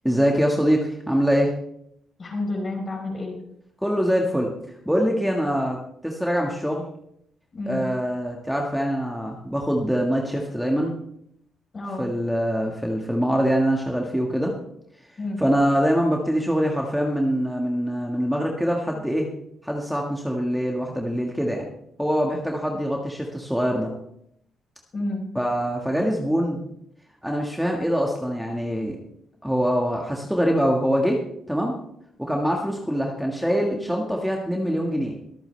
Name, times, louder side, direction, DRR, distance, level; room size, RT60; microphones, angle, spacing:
voice 1, 0.0-1.5 3.8-6.9 7.7-11.0 12.0-14.5 15.1-19.3 19.6-21.7 22.0-23.9 25.4-26.6 27.2-29.0 29.4-31.8 32.2-35.2, equal, ahead, 0 dB, 1.8 m, -24 dB
voice 2, 2.2-3.4 7.5-7.8 11.7-12.0 15.2-15.4 24.9-25.2, left 2 dB, 35° left, 2 dB, 4.4 m, -30 dB
23.5 x 8.8 x 3.4 m, 0.73 s
cardioid pair, 105°, 0 cm